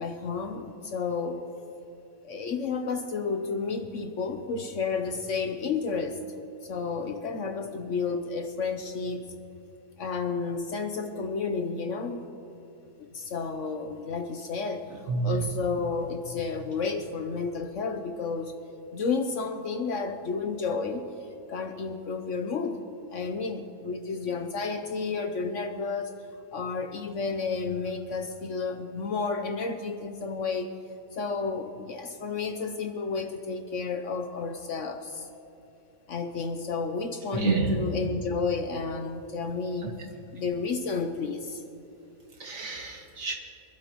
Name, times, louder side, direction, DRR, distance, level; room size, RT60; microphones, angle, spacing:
voice 1, 0.0-1.4 2.2-6.2 6.6-9.3 10.0-12.3 13.1-18.5 18.9-21.1 21.5-22.8 23.1-26.2 26.5-30.7 31.1-35.3 36.1-39.9 40.3-41.6, left 4 dB, 60° left, 6 dB, 1.0 m, -31 dB
voice 2, 15.1-15.4 37.3-37.8 39.8-39.9 42.4-43.3, right 3 dB, 60° right, 0 dB, 2.0 m, -28 dB
25.5 x 12.0 x 3.0 m, 2.8 s
omnidirectional pair, 1.6 m